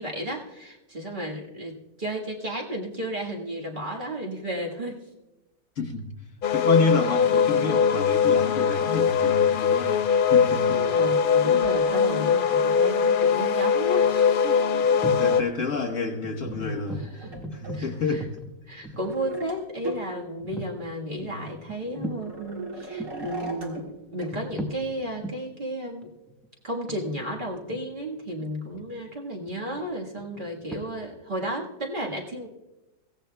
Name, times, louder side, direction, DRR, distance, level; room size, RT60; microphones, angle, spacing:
voice 1, 0.0-5.1 10.9-14.5 16.9-17.3 17.7-18.3 18.7-26.1 26.6-32.5, equal, 35° right, -2 dB, 1.7 m, -33 dB
voice 2, 5.8-6.1 6.5-9.9 10.3-10.8 11.4-11.6 15.2-17.0 17.5-18.3 21.2-21.4, left 4 dB, 55° left, 2 dB, 1.6 m, -29 dB
sound 1, 6.4-15.4, left 6 dB, 90° left, 0.4 m, -21 dB
sound 2, 7.1-7.6 9.3-12.0 12.6-17.9 18.2-18.3 19.0-19.6 19.8-20.1 20.9-21.0 21.2-23.9 24.2-24.3 25.1-25.2, right 3 dB, 60° right, 2.1 m, -41 dB
sound 3, 11.2-11.9 13.7-13.8 14.0-14.2 14.8-15.4 15.7-15.8 16.2-19.4 19.9-20.0 20.4-20.8 21.7-22.3 22.8-23.3 24.0-24.8 25.2-25.4 26.0-29.0 29.4-30.8, equal, ahead, 1.0 m, -38 dB
22.5 x 16.0 x 2.3 m, 1.0 s
omnidirectional pair, 1.6 m